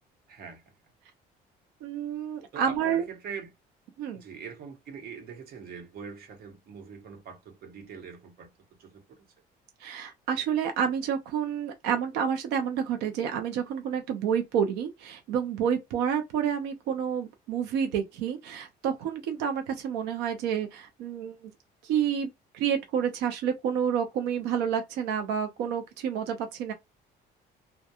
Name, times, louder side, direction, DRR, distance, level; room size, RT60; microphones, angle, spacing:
voice 1, 0.3-0.6 2.5-3.5 4.1-8.5 8.8-9.2, right 6 dB, 65° right, 1.0 m, -43 dB
voice 2, 1.8-3.0 4.0-4.2 9.8-21.5 21.8-26.7, right 8 dB, 90° right, 0.6 m, -29 dB
2.8 x 2.2 x 2.2 m
cardioid pair, 110°, 17 cm